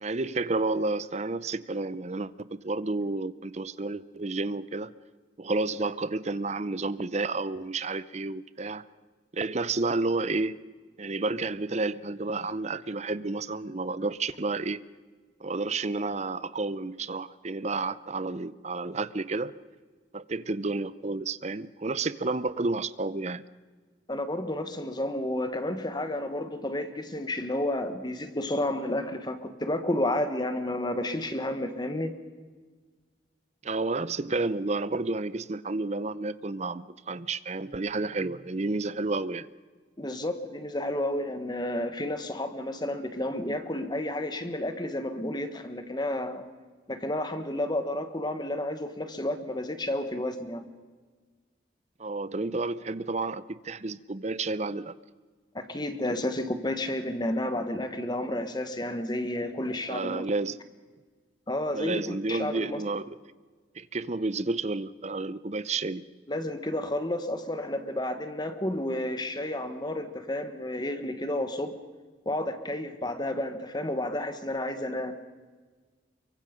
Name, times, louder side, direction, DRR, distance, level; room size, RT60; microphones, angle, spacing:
voice 1, 0.0-4.9 5.4-8.8 9.3-10.5 11.0-14.8 15.4-19.5 20.1-23.4 33.6-39.5 52.0-54.9 59.9-60.6 61.7-63.2 63.8-66.0, right 3 dB, 35° right, 16 dB, 0.6 m, -31 dB
voice 2, 24.1-32.1 40.0-46.4 46.9-50.6 55.5-60.2 61.5-62.8 66.3-71.8 72.2-75.1, left 1 dB, 20° left, 9 dB, 1.3 m, -31 dB
24.0 x 23.5 x 5.3 m, 1.4 s
head